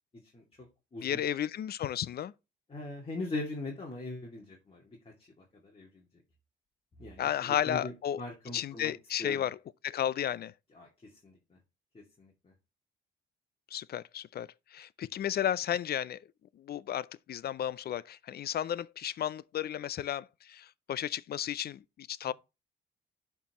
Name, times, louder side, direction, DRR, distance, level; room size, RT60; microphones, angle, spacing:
voice 1, 0.3-0.7 0.9-1.2 2.7-5.0 5.4-6.1 7.0-8.9 9.2-9.5 10.7-11.6 11.9-12.5, left 2 dB, 30° left, 2.3 m, -41 dB
voice 2, 1.0-2.3 7.2-8.2 8.5-9.6 9.8-10.5 13.7-16.2 16.6-22.3, left 10 dB, 55° left, 0.5 m, -33 dB
11.0 x 4.5 x 3.0 m
cardioid pair, 90°, 20 cm